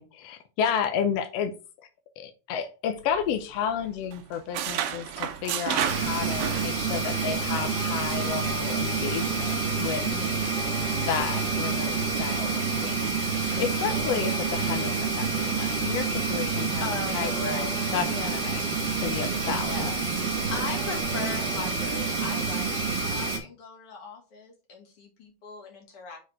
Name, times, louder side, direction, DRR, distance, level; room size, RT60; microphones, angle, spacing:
voice 1, 0.0-1.5 2.2-10.0 11.0-18.6 19.0-19.9, left 7 dB, 75° left, 8 dB, 1.5 m, -32 dB
sound 1, 3.0-3.8 4.1-7.1 7.4-7.6 8.1-8.3, right 10 dB, 75° right, 1.8 m, -32 dB
sound 2, 5.9-23.4, right 4 dB, 50° right, 2.7 m, -28 dB
voice 2, 10.0-10.5 13.3-13.6 16.8-17.3 18.0-18.4 19.6-26.2, left 4 dB, 50° left, -1 dB, 3.0 m, -39 dB
6.1 x 4.6 x 4.7 m, 0.33 s
omnidirectional pair, 3.6 m